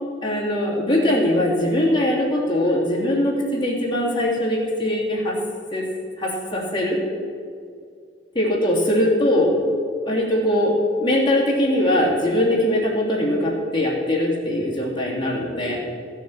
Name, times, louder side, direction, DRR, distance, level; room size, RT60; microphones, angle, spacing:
voice 1, 0.2-5.4 5.7-5.9 6.2-7.0 8.3-9.5 10.0-15.8, left 1 dB, 25° left, -4 dB, 2.8 m, -21 dB
14.5 x 7.3 x 7.3 m, 2.4 s
head